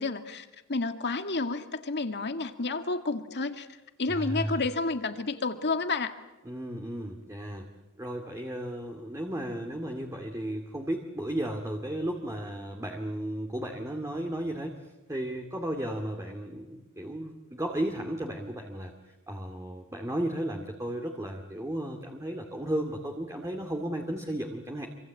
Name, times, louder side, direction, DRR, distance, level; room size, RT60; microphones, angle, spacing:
voice 1, 0.0-3.7 4.0-6.2, left 3 dB, 55° left, 7 dB, 2.1 m, -30 dB
voice 2, 4.1-4.6 6.4-7.7 8.0-14.8 15.1-24.9, right 1 dB, 15° right, 2 dB, 2.3 m, -34 dB
27.0 x 25.5 x 8.4 m, 1.1 s
head